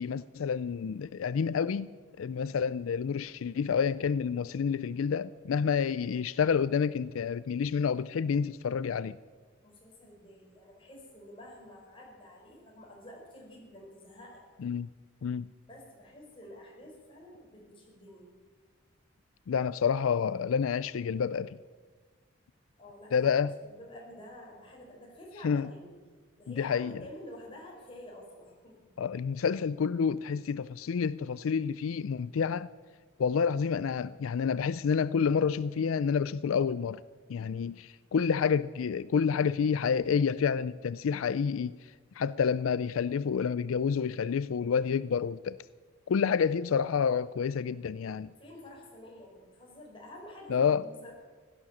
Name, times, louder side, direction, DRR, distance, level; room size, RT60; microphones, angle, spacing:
voice 1, 0.0-1.9 2.2-9.2 14.6-14.9 15.2-15.5 19.5-21.6 23.1-23.6 25.4-25.7 26.5-27.0 29.0-32.7 33.2-37.0 37.3-41.7 42.2-45.6 46.1-48.3 50.5-50.8, left 6 dB, 85° left, 0.4 m, -29 dB
voice 2, 9.6-14.4 15.7-18.3 22.8-23.3 23.6-26.0 26.4-28.8 48.4-51.1, left 1 dB, 25° left, 4.6 m, -49 dB
16.0 x 12.0 x 7.2 m
head